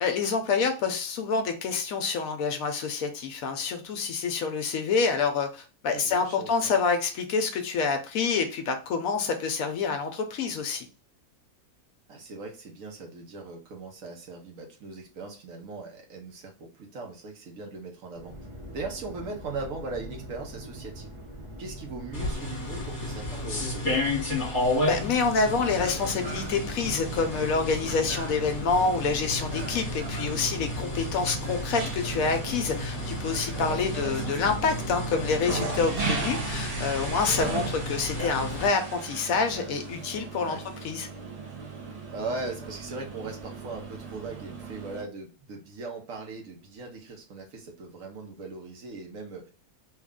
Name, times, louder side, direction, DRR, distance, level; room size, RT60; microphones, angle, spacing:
voice 1, 0.0-10.9 24.9-41.1, left 5 dB, 70° left, 5 dB, 0.9 m, -27 dB
voice 2, 5.9-6.8 12.1-18.3 18.7-21.1 21.6-24.0 33.5-34.5 37.3-37.7 40.4-40.6 42.1-49.5, right 3 dB, 65° right, 0 dB, 1.2 m, -39 dB
sound 1, 18.1-37.0, right 1 dB, 25° right, 0.9 m, -42 dB
sound 2, 22.1-38.7, left 2 dB, 35° left, 1.3 m, -33 dB
sound 3, 25.4-45.0, right 4 dB, 45° right, 0.5 m, -38 dB
3.3 x 2.4 x 3.6 m, 0.34 s
omnidirectional pair, 1.6 m